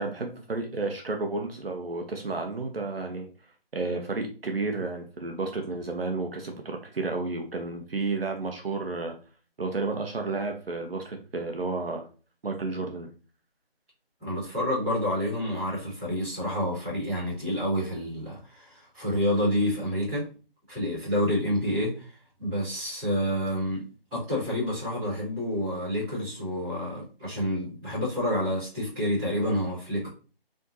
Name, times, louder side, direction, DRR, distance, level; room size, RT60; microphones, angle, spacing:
voice 1, 0.0-3.3 3.7-9.1 9.6-12.0 12.4-13.1, right 3 dB, 70° right, 3 dB, 1.0 m, -31 dB
voice 2, 14.2-20.3 20.7-22.1 22.4-23.8 24.1-30.1, equal, 5° right, -16 dB, 2.4 m, -28 dB
4.3 x 3.6 x 2.8 m, 0.36 s
figure-of-eight pair, 175°, 30 cm